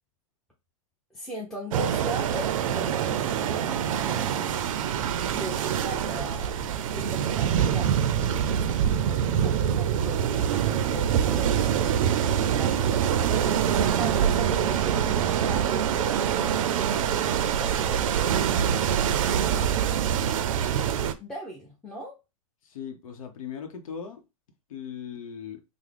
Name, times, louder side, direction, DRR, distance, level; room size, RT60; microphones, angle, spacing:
voice 1, 1.1-4.5 5.3-12.8 13.6-19.7 21.2-22.1, right 1 dB, 5° left, 0.6 m, -40 dB
sound 1, 1.7-21.1, right 9 dB, 70° right, 0.4 m, -25 dB
voice 2, 22.6-24.2 24.7-25.6, left 7 dB, 75° left, 0.8 m, -38 dB
3.5 x 2.1 x 3.3 m
hypercardioid pair, 140°, 18 cm